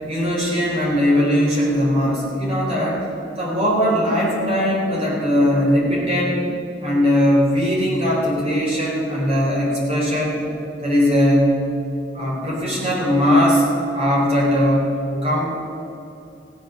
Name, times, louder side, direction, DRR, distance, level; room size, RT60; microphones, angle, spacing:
voice 1, 0.1-3.1 3.4-6.5 6.8-10.4 10.8-11.6 12.1-13.6 13.9-15.5, equal, 30° right, -4 dB, 3.9 m, -19 dB
16.5 x 8.4 x 6.5 m, 2.7 s
head